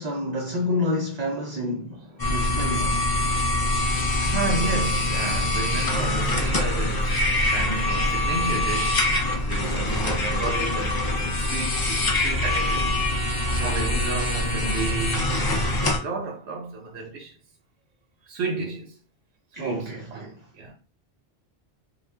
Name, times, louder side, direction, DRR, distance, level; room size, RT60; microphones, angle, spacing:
voice 1, 0.0-3.1 9.6-10.1 13.6-13.9 19.5-20.3, left 1 dB, 50° right, 0.6 m, -29 dB
sound 1, 2.2-16.0, left 1 dB, 40° left, 0.3 m, -24 dB
voice 2, 4.2-13.0 13.3-17.3 18.3-19.0 19.5-20.7, right 3 dB, 80° right, 0.9 m, -32 dB
2.4 x 2.1 x 3.3 m
omnidirectional pair, 1.1 m